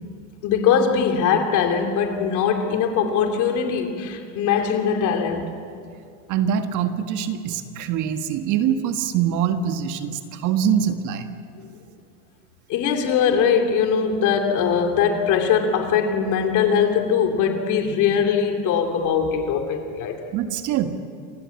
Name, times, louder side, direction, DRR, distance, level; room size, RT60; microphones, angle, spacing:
voice 1, 0.4-5.5 12.7-20.3, left 7 dB, 50° left, 3.1 m, -21 dB
voice 2, 6.3-11.3 20.3-20.9, right 8 dB, 50° right, 1.7 m, -24 dB
27.5 x 15.5 x 8.5 m
supercardioid pair, 110°, 39 cm